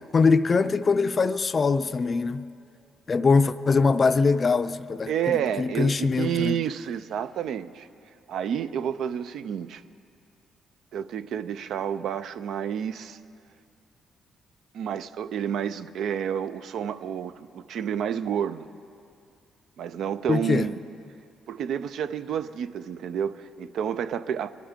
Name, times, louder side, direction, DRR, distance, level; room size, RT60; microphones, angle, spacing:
voice 1, 0.1-2.5 3.1-6.5 20.3-20.7, left 4 dB, 35° left, 0.4 m, -22 dB
voice 2, 5.1-7.9 8.3-9.8 10.9-13.2 14.7-18.7 19.8-20.7 21.5-24.5, right 8 dB, 75° right, 0.5 m, -30 dB
23.0 x 12.0 x 3.7 m
cardioid pair, 90°, 0 cm